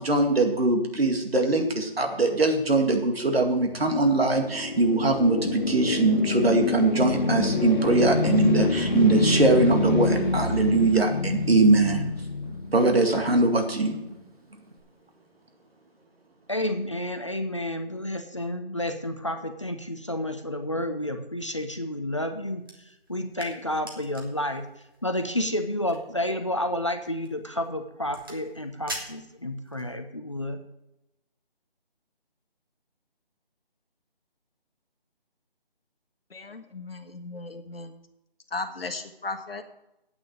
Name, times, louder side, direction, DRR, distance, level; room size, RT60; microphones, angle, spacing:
voice 1, 0.0-12.1 12.7-14.0, right 2 dB, 75° right, 4 dB, 2.2 m, -22 dB
sound 1, 3.9-13.1, left 2 dB, 50° left, 1.5 m, -27 dB
sound 2, 5.1-14.8, right 2 dB, 40° right, 1.4 m, -43 dB
voice 2, 16.5-22.6 23.1-24.6 25.0-30.6, left 1 dB, 30° left, 6 dB, 0.6 m, -30 dB
sound 3, 22.6-30.0, right 1 dB, 20° right, 1.1 m, -45 dB
voice 3, 36.3-37.9 38.5-39.6, left 3 dB, 70° left, 7 dB, 1.4 m, -36 dB
8.8 x 6.4 x 8.5 m, 0.89 s
figure-of-eight pair, 175°, 30 cm